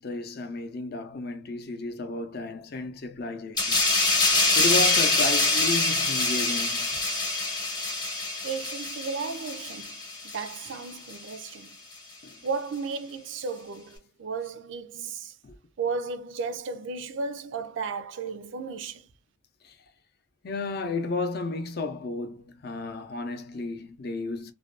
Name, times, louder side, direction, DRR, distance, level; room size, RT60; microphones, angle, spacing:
voice 1, 0.0-3.8 4.5-6.9 20.4-24.5, left 2 dB, 55° left, 0.5 m, -32 dB
sound 1, 3.6-10.7 11.1-11.3, left 3 dB, 20° left, 0.8 m, -25 dB
voice 2, 8.4-10.0 10.3-11.8 12.4-15.3 15.8-19.0, right 4 dB, 70° right, 0.4 m, -34 dB
2.5 x 2.2 x 2.4 m
head